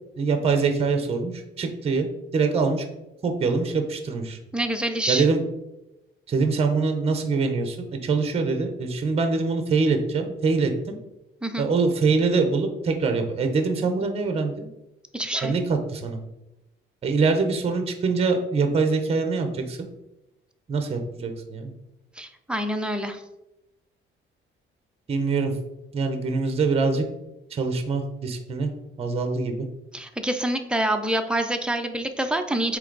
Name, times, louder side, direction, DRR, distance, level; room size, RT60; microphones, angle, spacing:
voice 1, 0.2-2.1 2.3-2.8 3.2-4.4 5.1-5.4 6.3-11.0 11.6-14.7 15.4-16.2 17.0-19.9 20.7-21.7 25.1-25.5 25.9-27.0 27.5-28.7 29.0-29.7, right 4 dB, 30° right, 6 dB, 0.7 m, -24 dB
voice 2, 4.5-5.3 11.4-11.7 15.1-15.5 22.2-23.2 29.9-32.8, right 1 dB, 5° right, 5 dB, 0.4 m, -26 dB
7.9 x 3.3 x 3.9 m, 0.93 s
cardioid pair, 165°, 21 cm